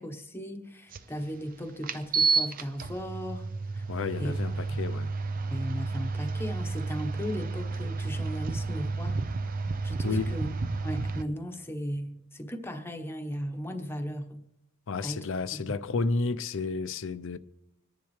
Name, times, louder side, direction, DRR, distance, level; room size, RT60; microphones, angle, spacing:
voice 1, 0.0-3.8 4.2-4.3 4.7-4.8 5.5-9.2 9.8-10.5 10.8-14.5 15.0-15.2 15.5-15.6, equal, 10° left, 1.1 m, -36 dB
sound 1, 0.9-1.0 1.8-11.2, right 4 dB, 40° right, 0.5 m, -31 dB
voice 2, 3.9-5.1 10.0-10.4 14.9-17.4, left 3 dB, 65° left, 0.6 m, -31 dB
26.5 x 10.5 x 3.2 m
head